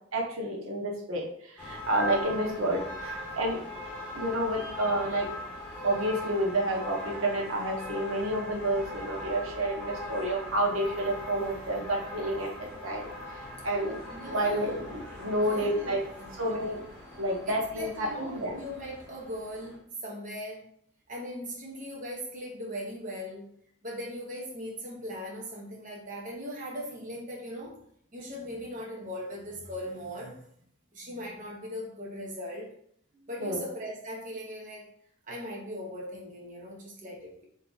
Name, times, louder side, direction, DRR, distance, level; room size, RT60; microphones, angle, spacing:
voice 1, 0.1-3.6 4.1-5.3 5.8-13.1 13.6-14.0 14.2-16.0 16.4-16.8 17.2-18.6 33.4-33.6, right 1 dB, 85° right, -1 dB, 0.9 m, -29 dB
sound 1, 1.6-19.8, left 1 dB, 10° left, 1.3 m, -41 dB
voice 2, 14.1-14.9 15.4-16.5 17.5-20.7 21.1-23.5 23.8-27.8 28.1-30.4 30.9-32.7 33.3-34.9 35.3-37.5, equal, 40° right, -2 dB, 0.8 m, -39 dB
3.5 x 2.8 x 3.8 m, 0.67 s
head